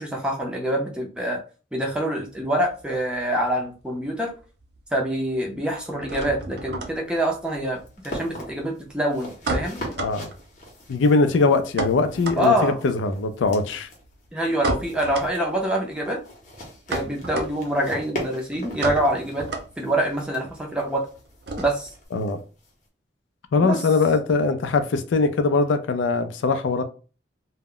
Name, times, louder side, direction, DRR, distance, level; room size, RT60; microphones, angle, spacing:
voice 1, 0.0-1.4 1.7-4.3 4.9-9.8 12.4-12.8 14.3-16.2 16.9-19.5 19.8-21.0 21.6-21.9 23.6-23.8, right 1 dB, 5° right, 0.5 m, -25 dB
sound 1, 2.3-4.8 5.0-22.1, right 2 dB, 60° right, 0.5 m, -34 dB
sound 2, 6.5-22.9, equal, 40° left, 0.7 m, -41 dB
voice 2, 10.0-10.3 10.9-13.9 22.1-22.4 23.5-26.8, left 3 dB, 85° left, 0.4 m, -21 dB
2.1 x 2.0 x 3.6 m
head